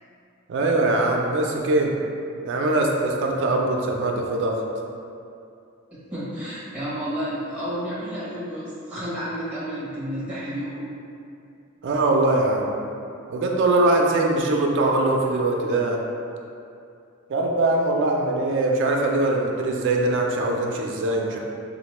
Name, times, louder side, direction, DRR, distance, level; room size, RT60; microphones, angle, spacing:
voice 1, 0.5-2.0 2.4-4.6 11.8-12.7 13.3-16.0 17.3-21.4, right 2 dB, 60° right, 1 dB, 0.4 m, -22 dB
voice 2, 5.9-10.9, equal, 5° right, -9 dB, 0.7 m, -31 dB
4.0 x 2.1 x 2.9 m, 2.6 s
head